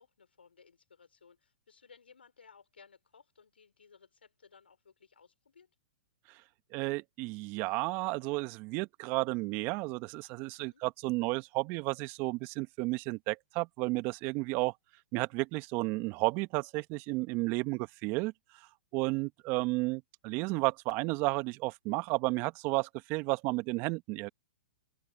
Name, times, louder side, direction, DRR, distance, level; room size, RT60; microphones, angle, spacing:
voice 1, 0.0-5.7 10.6-10.8, left 6 dB, 90° left, 5.4 m, -60 dB
voice 2, 6.7-14.7 15.1-18.3 18.9-24.3, right 24 dB, 40° right, 1.2 m, -32 dB
open air
hypercardioid pair, 120°, 6 cm